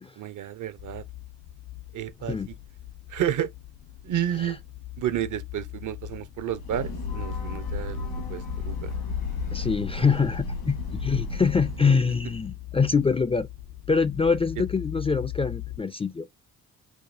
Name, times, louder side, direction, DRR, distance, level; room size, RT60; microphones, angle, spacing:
voice 1, 0.2-1.0 1.9-2.5 3.1-3.5 4.0-4.6 5.0-8.9 14.6-14.7, right 11 dB, 60° right, 0.6 m, -31 dB
sound 1, 0.8-15.8, left 16 dB, 70° left, 0.5 m, -40 dB
Breathing / Train, 6.5-12.0, left 3 dB, 90° left, 2.0 m, -33 dB
voice 2, 9.5-13.5 13.9-16.3, left 5 dB, 15° left, 0.3 m, -24 dB
4.8 x 2.3 x 2.5 m
cardioid pair, 75°, 36 cm